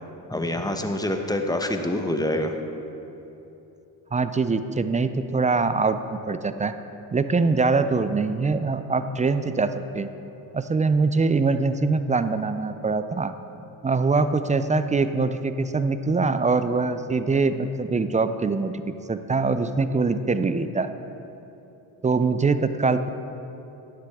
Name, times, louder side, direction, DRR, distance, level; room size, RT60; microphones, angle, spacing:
voice 1, 0.3-2.6, left 1 dB, 10° left, 5 dB, 1.0 m, -26 dB
voice 2, 4.1-6.7 7.1-10.1 10.5-13.3 13.8-18.8 19.1-20.9 22.0-23.1, right 4 dB, 15° right, 11 dB, 0.4 m, -23 dB
11.5 x 9.9 x 3.6 m, 3.0 s
supercardioid pair, 65°, 47 cm